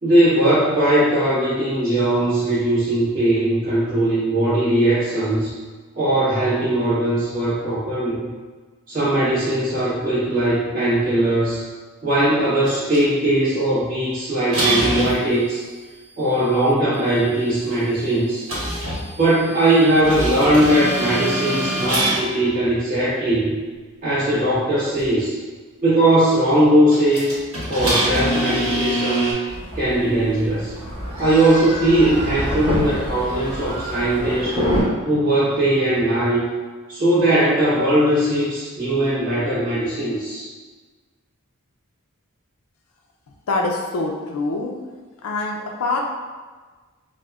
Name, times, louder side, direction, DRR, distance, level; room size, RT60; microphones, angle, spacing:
voice 1, 0.0-5.5 5.9-8.3 8.9-11.6 12.0-15.6 16.2-18.5 19.2-23.6 24.0-25.4 25.8-27.3 27.7-29.3 29.7-30.7 31.2-34.6 35.0-36.5 36.9-40.5, right 1 dB, 40° right, -13 dB, 1.3 m, -19 dB
sound 1, 12.7-13.0 14.5-15.2 18.5-22.2 25.0-25.1 26.9-29.3, right 1 dB, 65° right, 1.3 m, -24 dB
sound 2, 29.5-34.8, equal, 25° right, 1.1 m, -27 dB
voice 2, 43.5-44.7 45.2-46.0, left 3 dB, 75° left, 1 dB, 0.4 m, -24 dB
4.7 x 2.1 x 2.3 m, 1.4 s
head